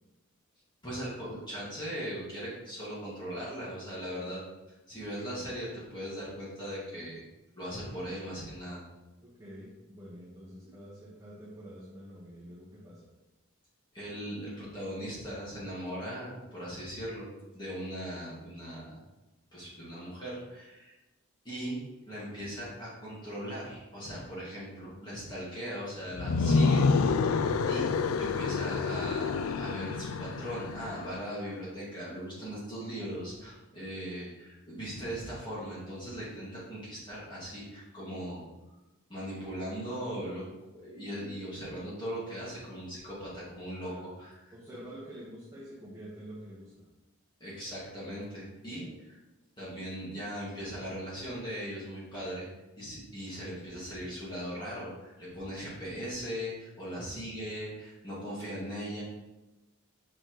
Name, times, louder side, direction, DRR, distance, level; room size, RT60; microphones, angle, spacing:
voice 1, 0.8-4.4 4.9-7.2 7.6-8.8 13.9-17.3 17.5-19.0 19.5-20.9 21.4-27.4 27.6-38.5 39.1-40.4 40.8-44.3 47.4-48.8 49.6-52.5 52.8-59.0, equal, 20° left, -9 dB, 2.2 m, -39 dB
voice 2, 9.2-13.1 43.8-44.1 44.5-46.9 48.7-48.9 56.9-57.0, equal, 15° right, -9 dB, 1.4 m, -47 dB
sound 1, 26.1-31.2, left 4 dB, 70° left, 0.4 m, -28 dB
6.2 x 6.1 x 3.2 m, 1.1 s
head